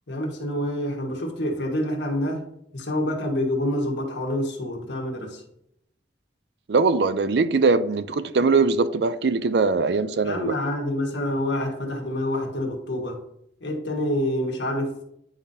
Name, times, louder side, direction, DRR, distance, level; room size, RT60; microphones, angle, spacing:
voice 1, 0.1-2.4 2.7-5.4 10.2-13.2 13.6-15.0, left 1 dB, 80° left, 1.5 m, -27 dB
voice 2, 6.7-10.5, right 4 dB, 70° right, 0.5 m, -21 dB
9.5 x 5.1 x 2.7 m
head